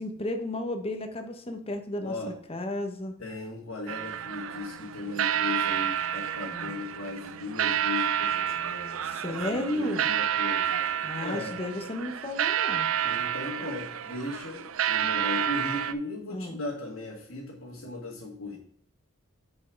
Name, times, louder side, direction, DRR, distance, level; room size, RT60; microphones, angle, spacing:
voice 1, 0.0-2.1 2.5-3.1 6.5-6.7 9.0-10.0 11.0-12.9 16.3-16.6, left 1 dB, 30° left, 6 dB, 1.0 m, -33 dB
voice 2, 2.0-2.3 3.2-9.0 9.3-10.8 11.2-11.5 13.0-18.6, left 2 dB, 75° left, -4 dB, 1.8 m, -37 dB
sound 1, 3.9-15.9, right 9 dB, 70° right, 0.5 m, -30 dB
6.0 x 5.4 x 4.6 m, 0.62 s
head